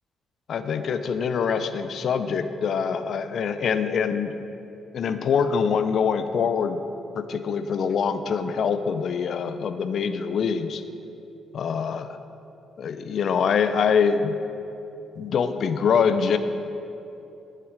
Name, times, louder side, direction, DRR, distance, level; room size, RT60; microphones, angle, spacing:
voice 1, 0.5-4.3 4.9-6.8 7.1-10.8 11.5-12.2 12.8-14.4 15.2-16.4, left 6 dB, 60° left, 10 dB, 0.5 m, -24 dB
11.0 x 7.6 x 4.9 m, 2.8 s
cardioid pair, 90°, 0 cm